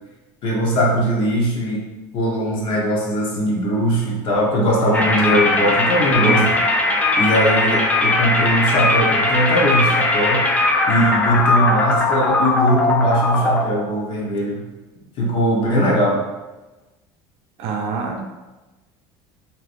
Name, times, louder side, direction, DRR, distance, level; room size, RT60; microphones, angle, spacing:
voice 1, 0.4-1.8 2.1-6.5 7.2-10.4 10.9-14.6 15.2-16.2, equal, 50° left, -2 dB, 0.9 m, -20 dB
sound 1, 4.9-13.7, left 2 dB, 15° left, 0.3 m, -19 dB
voice 2, 17.6-18.2, right 5 dB, 65° right, 2 dB, 0.5 m, -25 dB
3.2 x 2.7 x 2.5 m, 1.1 s
cardioid pair, 130°, 12 cm